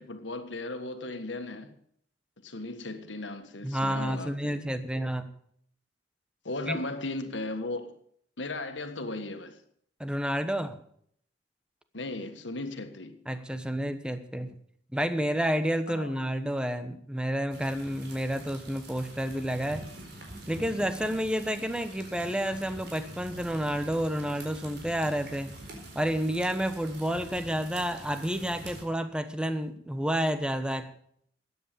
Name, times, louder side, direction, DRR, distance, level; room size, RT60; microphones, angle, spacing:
voice 1, 0.0-1.8 2.4-4.6 6.5-7.9 8.4-9.6 11.9-13.2 15.9-16.2, left 2 dB, 85° left, 1.7 m, -36 dB
voice 2, 3.6-5.3 6.7-6.8 10.0-10.8 13.3-14.5 14.9-19.8 20.5-25.5 25.9-30.9, equal, 5° right, 1.1 m, -30 dB
sound 1, 17.5-28.8, right 1 dB, 65° right, 4.2 m, -45 dB
13.5 x 9.7 x 6.9 m
head